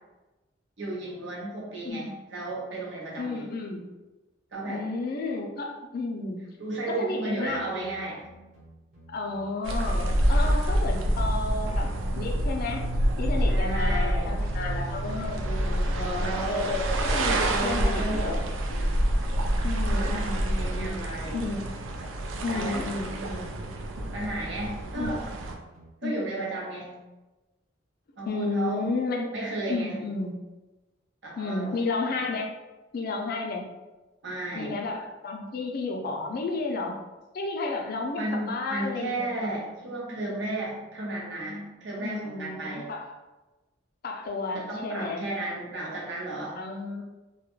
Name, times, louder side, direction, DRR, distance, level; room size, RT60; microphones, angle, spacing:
voice 1, 0.8-3.5 4.5-4.8 6.6-8.2 13.5-14.3 16.2-16.7 17.5-18.4 19.9-20.3 20.6-21.5 22.5-22.8 24.1-25.2 26.0-27.0 28.2-28.9 29.3-30.0 31.2-31.7 34.2-34.8 38.2-42.9 44.5-46.6, right 2 dB, 65° right, -4 dB, 0.8 m, -33 dB
voice 2, 3.2-3.9 4.7-6.4 6.9-7.9 9.1-11.9 12.2-12.8 13.2-18.4 18.7-18.9 19.6-21.7 22.4-23.5 24.9-25.2 26.0-26.2 28.3-29.3 29.7-30.4 31.4-32.5 32.9-33.7 34.5-37.0 37.3-39.5 42.0-43.1 44.0-45.3 46.5-47.0, left 3 dB, 50° left, 1 dB, 0.4 m, -32 dB
sound 1, 7.5-10.5 11.4-14.4 15.3-18.3 19.3-22.3 23.2-25.9, right 1 dB, 40° right, 1.0 m, -53 dB
sound 2, 9.6-25.6, right 1 dB, 90° right, 0.4 m, -27 dB
sound 3, 21.3-25.2, equal, 5° right, 0.6 m, -48 dB
2.3 x 2.1 x 3.0 m, 1.1 s
head